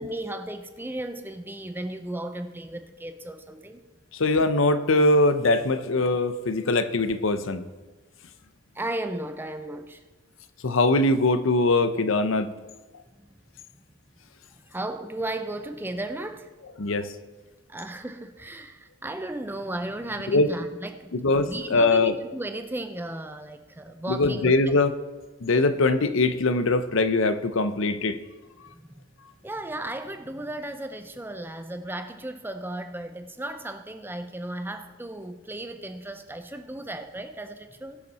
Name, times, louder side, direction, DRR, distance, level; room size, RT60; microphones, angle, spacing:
voice 1, 0.0-3.8 8.7-10.0 13.2-13.3 14.7-16.5 17.0-17.1 17.7-21.2 21.5-24.8 28.7-29.0 29.4-38.0, right 1 dB, 10° right, 8 dB, 0.5 m, -35 dB
voice 2, 4.1-7.6 10.6-12.5 16.8-17.1 20.3-20.5 21.1-22.2 24.1-24.9 25.4-28.2, left 2 dB, 65° left, 12 dB, 0.7 m, -22 dB
20.0 x 6.9 x 4.2 m, 1.2 s
head